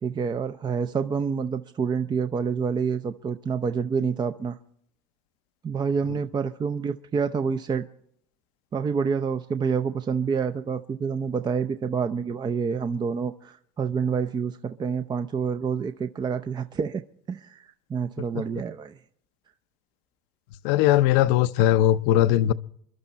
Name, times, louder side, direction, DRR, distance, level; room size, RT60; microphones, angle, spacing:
voice 1, 0.0-4.6 5.6-7.9 8.7-17.0 17.3-19.0, right 6 dB, 25° right, 0.6 m, -28 dB
voice 2, 20.6-22.5, left 13 dB, 70° left, 0.7 m, -20 dB
28.0 x 12.0 x 4.1 m
supercardioid pair, 110°, 19 cm